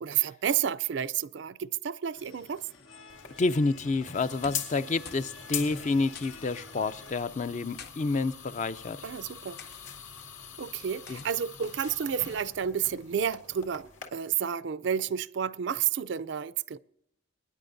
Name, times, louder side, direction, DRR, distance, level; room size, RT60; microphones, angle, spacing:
voice 1, 0.0-2.6 9.0-9.6 10.6-16.8, right 8 dB, 60° right, 0.4 m, -31 dB
sound 1, 2.1-7.1, left 4 dB, 85° left, 1.5 m, -50 dB
sound 2, 3.1-14.1, left 7 dB, 70° left, 2.1 m, -43 dB
voice 2, 3.4-9.1 11.1-11.2, left 3 dB, 35° left, 0.4 m, -29 dB
sound 3, 4.4-4.8 5.0-5.3 5.6-5.7 6.2-6.5 7.5-8.0 8.7-9.0 9.6-9.8 11.1-11.4, left 6 dB, 50° left, 0.8 m, -47 dB
24.0 x 10.0 x 2.6 m
head